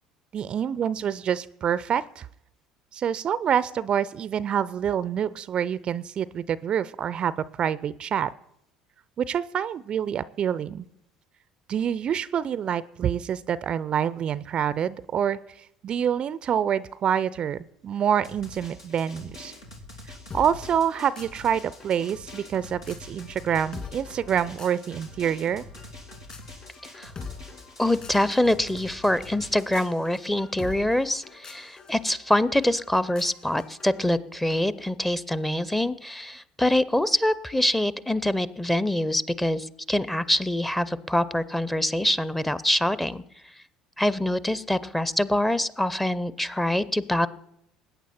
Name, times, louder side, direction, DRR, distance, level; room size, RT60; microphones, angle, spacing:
voice 1, 0.3-2.3 2.9-8.3 9.2-10.9 11.7-15.4 15.8-19.5 20.3-25.6, right 8 dB, 40° right, 18 dB, 0.4 m, -26 dB
Drum, 18.2-29.9, left 1 dB, 80° left, 2.0 m, -45 dB
sound 1, 20.3-34.0, left 5 dB, 35° left, 2.6 m, -45 dB
voice 2, 27.8-43.2 44.0-47.3, left 1 dB, 5° left, 17 dB, 0.7 m, -25 dB
20.5 x 9.1 x 4.3 m, 0.76 s
figure-of-eight pair, 60°, 2 cm